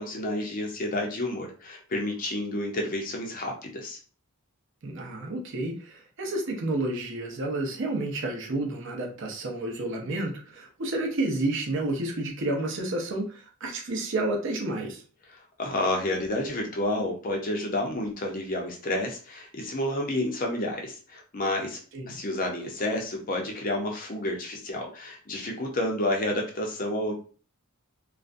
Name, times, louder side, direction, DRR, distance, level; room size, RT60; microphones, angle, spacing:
voice 1, 0.0-4.0 15.3-21.8 22.1-27.1, left 1 dB, 40° left, 1 dB, 0.5 m, -30 dB
voice 2, 4.8-15.0 21.9-22.1, right 2 dB, 55° right, 1 dB, 0.6 m, -30 dB
2.4 x 2.1 x 2.5 m, 0.38 s
head